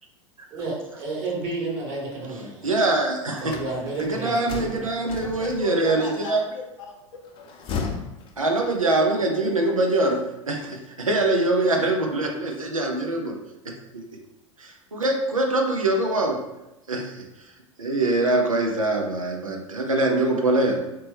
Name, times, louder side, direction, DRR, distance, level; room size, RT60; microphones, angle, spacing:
voice 1, 0.5-2.7 3.4-4.4, right 3 dB, 45° right, -3 dB, 1.5 m, -31 dB
voice 2, 2.6-3.5 4.0-6.4 8.4-10.2 10.5-13.4 13.7-14.0 14.6-16.4 16.9-17.1 17.8-20.8, right 2 dB, 90° right, 1 dB, 0.5 m, -23 dB
sound 1, 3.4-6.0 7.3-9.1, left 5 dB, 30° left, 0.5 m, -35 dB
voice 3, 5.2-7.5, left 3 dB, 70° left, 1 dB, 0.7 m, -36 dB
3.0 x 2.9 x 3.4 m, 0.96 s
figure-of-eight pair, 85°, 17 cm